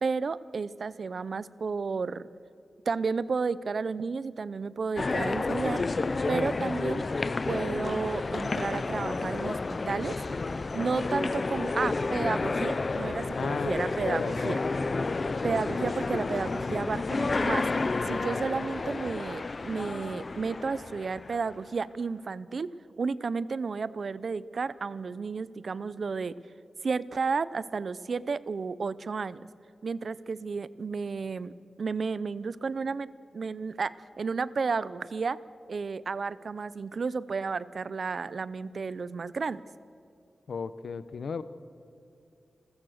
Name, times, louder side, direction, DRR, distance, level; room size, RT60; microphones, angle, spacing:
voice 1, 0.0-2.3 2.9-5.8 6.3-7.0 7.5-10.2 10.7-14.6 15.4-17.7 18.0-22.7 23.0-26.4 26.8-29.5 29.8-35.4 35.7-39.6, right 4 dB, 55° right, 17 dB, 0.6 m, -32 dB
sound 1, 5.0-21.6, left 3 dB, 35° left, 0.6 m, -30 dB
voice 2, 13.4-13.8 14.1-14.6 40.5-41.4, left 5 dB, 75° left, 13 dB, 0.9 m, -34 dB
29.0 x 14.5 x 6.5 m, 2.6 s
wide cardioid pair, 160°, 0 cm